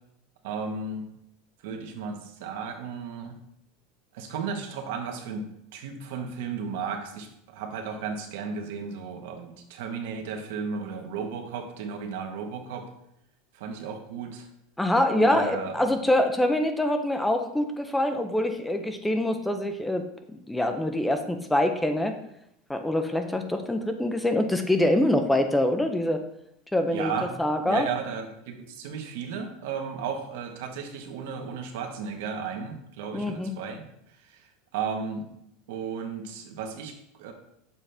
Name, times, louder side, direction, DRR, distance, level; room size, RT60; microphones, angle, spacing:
voice 1, 0.4-1.1 1.6-3.3 4.1-5.4 5.7-12.9 13.5-14.5 15.1-16.0 26.9-27.4 27.6-33.8 34.2-34.4 34.7-35.3 35.7-37.3, right 6 dB, 75° right, 4 dB, 1.1 m, -34 dB
voice 2, 14.8-20.0 20.5-22.2 22.7-26.2 26.7-27.1 27.4-27.9 33.1-33.5, left 1 dB, 5° left, 7 dB, 0.5 m, -25 dB
7.1 x 4.2 x 3.3 m, 0.76 s
supercardioid pair, 135°, 0 cm